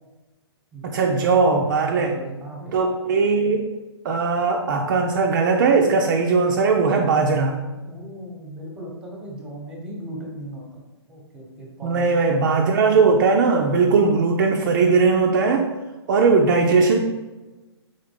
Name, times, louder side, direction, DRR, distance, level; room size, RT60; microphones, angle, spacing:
voice 1, 0.8-2.1 2.7-3.6 4.0-7.5 11.8-15.7 16.1-17.0, right 4 dB, 45° right, 2 dB, 0.4 m, -19 dB
voice 2, 1.8-2.8 7.8-10.6 11.1-12.2, right 1 dB, 5° right, -1 dB, 1.0 m, -37 dB
3.8 x 3.6 x 3.6 m, 1.1 s
figure-of-eight pair, 130°, 14 cm